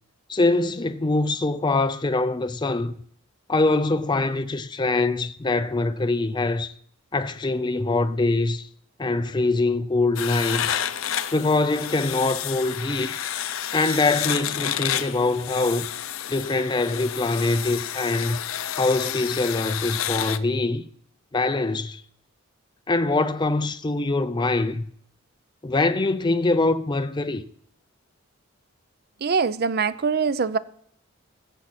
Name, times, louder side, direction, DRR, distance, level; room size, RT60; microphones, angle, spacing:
voice 1, 0.3-2.9 3.5-6.7 7.1-8.7 9.0-10.9 11.3-13.2 13.7-15.9 16.3-18.4 18.8-20.8 21.3-22.0 22.9-24.9 25.6-27.4, left 2 dB, 20° left, 0.4 m, -23 dB
sound 1, 10.2-20.4, left 10 dB, 70° left, 0.6 m, -30 dB
voice 2, 29.2-30.6, right 5 dB, 45° right, 0.5 m, -23 dB
20.5 x 7.4 x 4.2 m
head